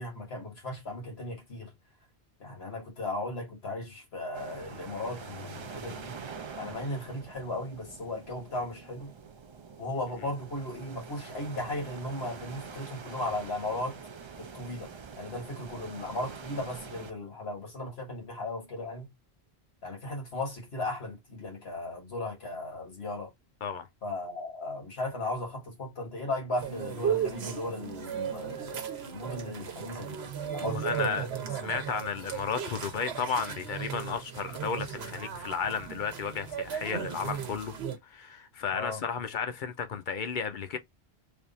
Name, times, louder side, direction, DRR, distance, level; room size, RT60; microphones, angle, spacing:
voice 1, 0.0-1.7 2.4-6.2 6.6-9.1 9.8-14.0 14.4-14.9 15.2-19.1 19.8-23.3 24.0-30.2 30.5-31.1 38.7-39.0, left 2 dB, 75° left, 1.8 m, -36 dB
sound 1, 4.3-17.1, right 5 dB, 50° right, 0.3 m, -45 dB
sound 2, 26.6-38.0, right 8 dB, 80° right, 1.0 m, -36 dB
voice 2, 30.7-37.7 38.0-40.8, left 6 dB, 55° left, 0.7 m, -33 dB
3.3 x 2.4 x 4.0 m
omnidirectional pair, 1.1 m